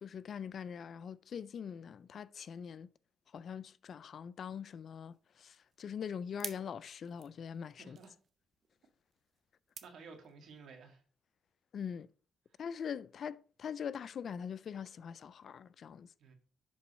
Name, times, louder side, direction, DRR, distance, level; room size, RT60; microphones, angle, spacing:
voice 1, 0.0-2.9 3.3-8.0 11.7-12.1 12.6-16.1, left 7 dB, 55° left, 0.3 m, -43 dB
sound 1, 5.1-10.7, right 6 dB, 45° right, 0.8 m, -53 dB
voice 2, 7.8-8.1 9.8-11.0 16.2-16.3, right 4 dB, 70° right, 1.9 m, -53 dB
10.5 x 3.9 x 4.2 m
cardioid pair, 90°, 0 cm